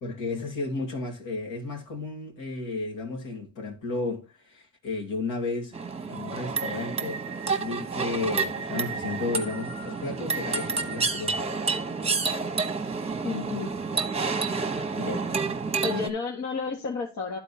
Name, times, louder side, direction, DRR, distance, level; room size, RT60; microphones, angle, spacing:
voice 1, 0.0-5.8 6.1-7.2 7.6-11.4, left 3 dB, 85° left, 2.6 m, -33 dB
sound 1, 5.7-16.1, right 4 dB, 20° right, 1.0 m, -29 dB
voice 2, 13.2-13.7 15.0-15.3 15.8-17.4, left 5 dB, 65° left, 1.8 m, -31 dB
11.0 x 4.3 x 4.2 m
cardioid pair, 90°, 30 cm